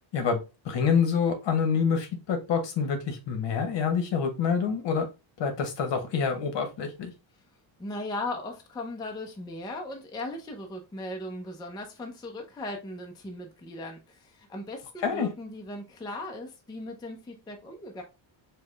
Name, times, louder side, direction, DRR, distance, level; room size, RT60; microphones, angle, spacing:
voice 1, 0.6-5.1 5.4-7.1 15.0-15.3, left 6 dB, 60° left, 1.1 m, -26 dB
voice 2, 7.8-18.0, left 2 dB, 10° left, 0.4 m, -38 dB
4.6 x 2.2 x 3.2 m
cardioid pair, 155°, 48 cm